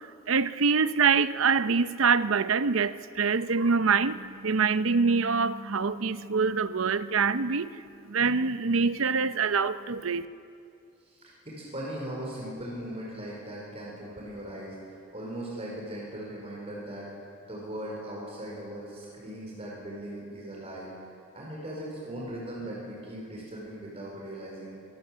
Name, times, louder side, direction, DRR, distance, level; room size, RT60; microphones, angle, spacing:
voice 1, 0.0-10.3, right 5 dB, 70° right, 13 dB, 0.7 m, -25 dB
voice 2, 11.1-14.8 15.1-20.9 21.3-24.7, right 1 dB, 30° right, -3 dB, 4.6 m, -39 dB
24.0 x 17.5 x 7.5 m, 2.4 s
head